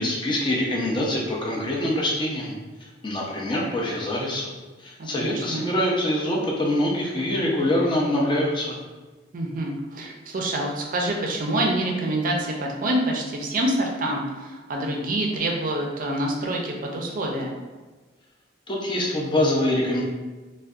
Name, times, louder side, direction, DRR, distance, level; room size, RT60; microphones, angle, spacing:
voice 1, 0.0-2.5 2.8-4.5 4.8-8.8 18.7-20.0, left 1 dB, 25° left, -3 dB, 0.5 m, -24 dB
voice 2, 5.0-5.6 9.3-17.6, right 1 dB, 45° right, 0 dB, 0.4 m, -26 dB
2.5 x 2.1 x 2.3 m, 1.3 s
head